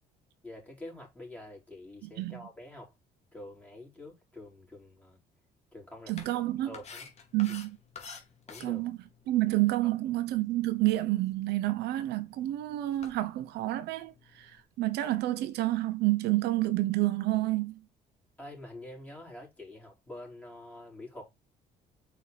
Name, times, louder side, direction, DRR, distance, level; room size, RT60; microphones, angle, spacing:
voice 1, 0.4-2.9 3.3-5.2 5.7-6.1 6.6-7.1 8.5-8.8 18.4-21.3, left 1 dB, 10° left, 4.1 m, -46 dB
voice 2, 2.0-2.4 6.1-6.7 7.3-7.8 8.6-9.0 9.3-17.8, right 17 dB, 80° right, 0.9 m, -29 dB
sound 1, 6.1-14.6, left 5 dB, 40° left, 2.3 m, -52 dB
5.7 x 4.7 x 3.8 m
cardioid pair, 110°, 17 cm